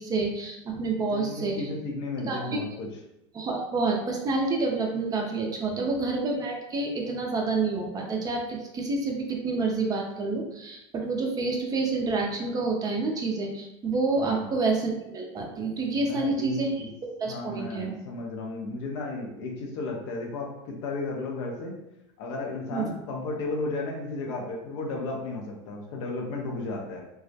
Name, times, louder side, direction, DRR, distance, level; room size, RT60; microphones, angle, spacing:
voice 1, 0.0-1.7 2.3-2.4 3.3-16.9 17.2-17.9 22.7-22.9, right 3 dB, 25° right, 1 dB, 0.4 m, -28 dB
voice 2, 0.9-2.9 5.7-5.9 14.2-14.4 15.9-16.9 17.3-21.8 22.2-27.0, left 2 dB, 70° left, 0 dB, 0.6 m, -34 dB
2.3 x 2.0 x 2.6 m, 0.87 s
supercardioid pair, 120°, 16 cm